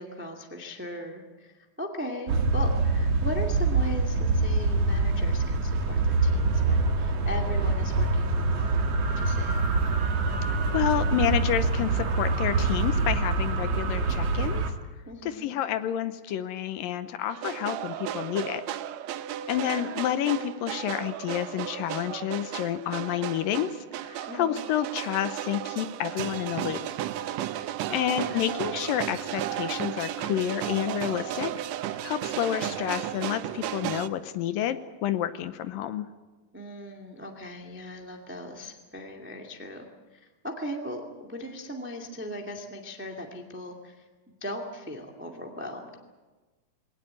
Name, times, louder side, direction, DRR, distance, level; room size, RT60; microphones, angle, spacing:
voice 1, 0.0-1.5 1.8-9.6 15.0-15.5 24.3-24.6 28.1-28.5 36.5-39.8 40.1-41.0 41.3-44.0 44.4-46.0, equal, 5° right, 2 dB, 1.3 m, -38 dB
sound 1, 2.3-14.7, right 3 dB, 55° right, 2.4 m, -25 dB
voice 2, 10.7-14.6 15.2-18.6 19.5-26.8 27.9-31.5 31.9-36.1, left 11 dB, 80° left, 11 dB, 2.5 m, -29 dB
sound 2, 17.3-34.1, right 11 dB, 80° right, 1.5 m, -34 dB
21.5 x 18.5 x 8.9 m, 1.3 s
omnidirectional pair, 4.1 m